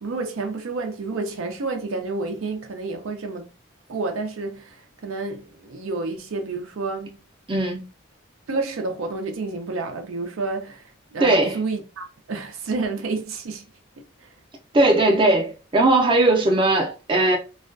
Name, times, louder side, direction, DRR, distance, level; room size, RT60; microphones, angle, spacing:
voice 1, 0.0-3.5 3.9-7.2 8.5-13.7 14.0-14.3, right 3 dB, 75° right, 0.5 m, -30 dB
voice 2, 7.5-7.8 11.2-11.6 14.7-17.4, right 2 dB, 25° right, 0.5 m, -18 dB
2.3 x 2.2 x 2.5 m
head